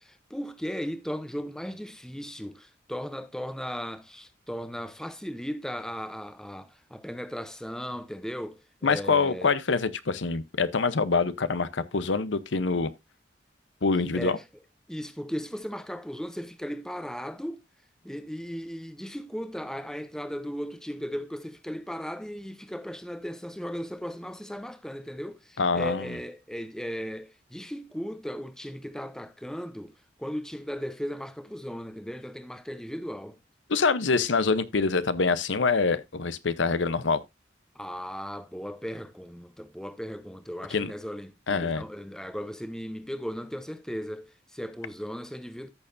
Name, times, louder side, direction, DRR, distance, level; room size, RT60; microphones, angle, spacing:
voice 1, 0.0-9.5 14.1-14.4 14.9-17.6 18.0-29.9 30.2-33.4 37.7-45.7, equal, 5° left, 0.7 m, -37 dB
voice 2, 8.8-12.9 13.8-14.4 25.6-26.2 33.7-37.2 40.7-40.9 41.5-41.8, left 4 dB, 85° left, 0.8 m, -25 dB
14.0 x 6.7 x 2.6 m
head